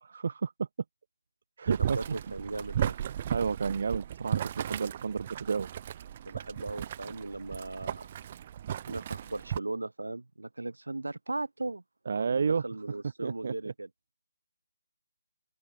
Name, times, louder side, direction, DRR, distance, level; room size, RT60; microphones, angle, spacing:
voice 1, 0.0-0.7 1.6-2.0 2.8-2.9 3.3-5.7 12.1-12.6 13.2-13.7, right 5 dB, 55° right, 1.0 m, -31 dB
Boiling, 1.7-9.6, right 10 dB, 35° right, 2.5 m, -35 dB
voice 2, 1.8-3.0 6.3-8.1 8.9-11.8 12.1-13.9, right 2 dB, 85° right, 5.1 m, -38 dB
open air
figure-of-eight pair, 155°, 0 cm